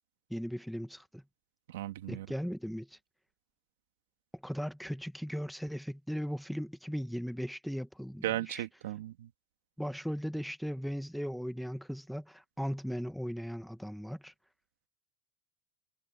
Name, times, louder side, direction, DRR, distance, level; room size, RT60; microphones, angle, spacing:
voice 1, 0.3-1.2 2.1-3.0 4.4-8.7 9.8-14.3, equal, ahead, 1.3 m, -37 dB
voice 2, 1.7-2.3 8.2-9.3, right 15 dB, 90° right, 2.3 m, -36 dB
supercardioid pair, 105°, 0 cm